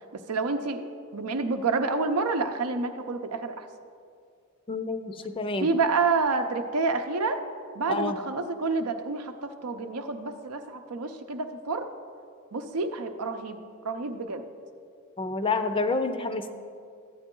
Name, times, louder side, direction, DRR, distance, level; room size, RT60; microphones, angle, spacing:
voice 1, 0.1-0.8 1.1-3.7 5.6-7.4 7.7-11.9 12.5-14.4, right 4 dB, 85° right, 7 dB, 0.7 m, -28 dB
voice 2, 4.7-5.7 7.9-8.2 15.2-16.5, left 3 dB, 25° left, 9 dB, 0.5 m, -28 dB
13.5 x 8.8 x 3.8 m, 2.3 s
head